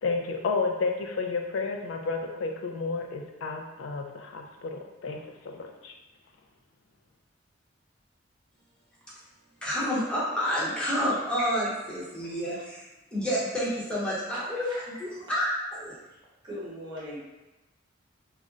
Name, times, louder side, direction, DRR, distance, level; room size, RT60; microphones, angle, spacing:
voice 1, 0.0-5.9, left 4 dB, 85° left, 3 dB, 0.4 m, -31 dB
voice 2, 9.6-12.8 13.1-14.7 15.0-15.9, equal, 5° left, -7 dB, 0.7 m, -29 dB
voice 3, 15.9-17.2, equal, 25° right, -8 dB, 1.0 m, -41 dB
2.4 x 2.0 x 3.7 m, 1.0 s
head